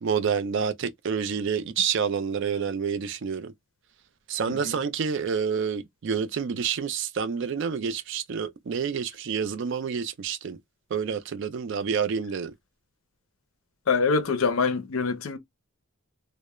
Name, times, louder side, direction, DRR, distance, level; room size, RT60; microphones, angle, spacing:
voice 1, 0.0-3.5 4.3-10.6 10.9-12.5, right 6 dB, 55° right, 0.4 m, -28 dB
voice 2, 13.9-15.4, left 4 dB, 70° left, 0.5 m, -24 dB
2.2 x 2.0 x 2.9 m
head